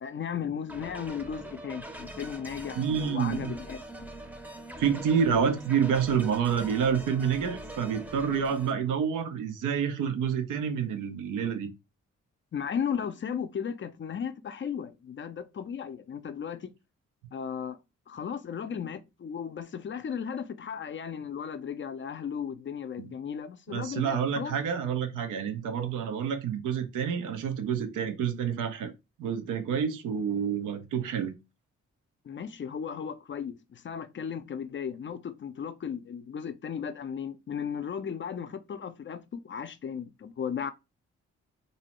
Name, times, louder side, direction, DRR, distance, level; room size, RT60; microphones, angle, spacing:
voice 1, 0.0-3.8 12.5-16.7 17.3-17.8 18.1-24.6 32.3-40.7, left 7 dB, 40° left, 0.4 m, -35 dB
sound 1, 0.7-8.7, right 1 dB, 5° right, 0.6 m, -43 dB
voice 2, 2.8-3.5 4.8-11.7 23.0-23.1 23.7-28.9 29.2-31.3, right 7 dB, 85° right, 0.5 m, -28 dB
2.6 x 2.0 x 2.9 m
supercardioid pair, 45°, 31 cm